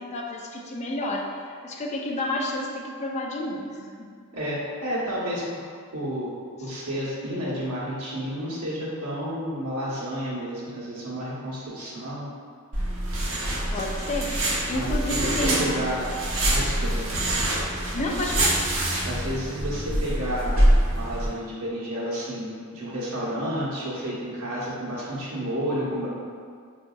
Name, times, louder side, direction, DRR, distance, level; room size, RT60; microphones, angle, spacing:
voice 1, 0.0-4.1 13.7-14.4 14.7-15.8 17.9-18.7, left 1 dB, 30° left, 0 dB, 0.4 m, -30 dB
voice 2, 4.3-5.6 5.9-12.3 14.7-16.1 16.5-17.0 19.0-20.6 20.9-26.1, equal, 85° right, -6 dB, 0.9 m, -31 dB
sound 1, 12.7-21.3, right 1 dB, 65° right, 0.7 m, -25 dB
4.6 x 2.6 x 2.3 m, 2.1 s
head